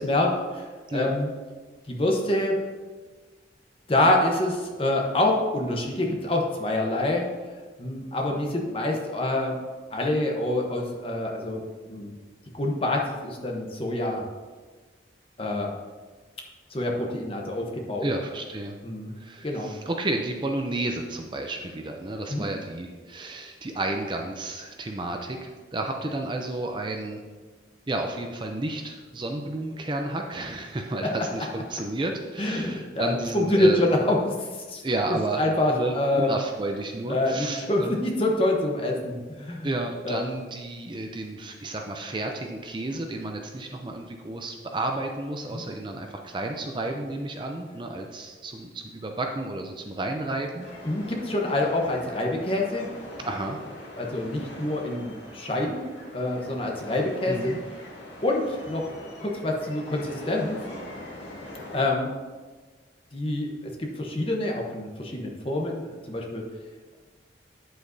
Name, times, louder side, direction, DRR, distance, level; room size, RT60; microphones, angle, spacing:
voice 1, 0.0-1.3 1.9-2.6 3.9-7.2 7.8-9.6 9.9-12.1 12.5-14.2 15.4-15.7 16.7-18.1 18.8-19.1 19.4-19.7 22.3-22.4 32.4-34.8 35.1-36.3 37.1-39.7 40.0-40.2 45.5-45.6 50.8-52.9 54.0-55.9 56.1-57.5 58.2-60.6 61.7-62.1 63.1-66.4, left 1 dB, 30° left, 0 dB, 1.0 m, -26 dB
voice 2, 18.0-18.7 19.1-27.2 27.9-33.8 34.8-35.4 35.7-38.0 39.6-50.7 53.2-53.6 57.3-57.6, right 2 dB, 25° right, 3 dB, 0.5 m, -31 dB
sound 1, 50.6-61.9, left 1 dB, 85° left, 1.8 m, -42 dB
8.6 x 7.7 x 2.7 m, 1.4 s
head